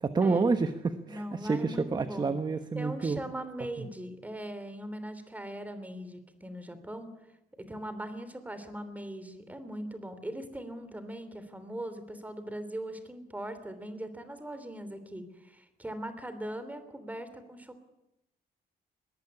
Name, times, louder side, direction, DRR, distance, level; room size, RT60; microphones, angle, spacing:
voice 1, 0.0-3.2 3.8-3.9, right 4 dB, 25° right, 9 dB, 1.2 m, -29 dB
voice 2, 1.1-2.3 2.7-7.1 7.6-17.8, right 1 dB, 10° right, 11 dB, 3.0 m, -40 dB
22.0 x 19.0 x 9.8 m, 0.89 s
cardioid pair, 145°, 17 cm